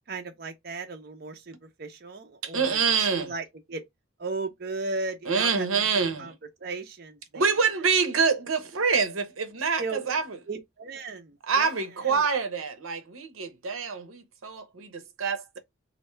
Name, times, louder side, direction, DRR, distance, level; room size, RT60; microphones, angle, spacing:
voice 1, 0.1-3.8 4.2-6.3 6.6-7.7 9.5-10.0 10.5-12.3, right 3 dB, 50° right, 0.6 m, -36 dB
voice 2, 2.4-3.3 5.3-6.2 7.3-10.2 11.5-15.6, right 5 dB, 90° right, 0.8 m, -26 dB
3.2 x 2.7 x 4.3 m
head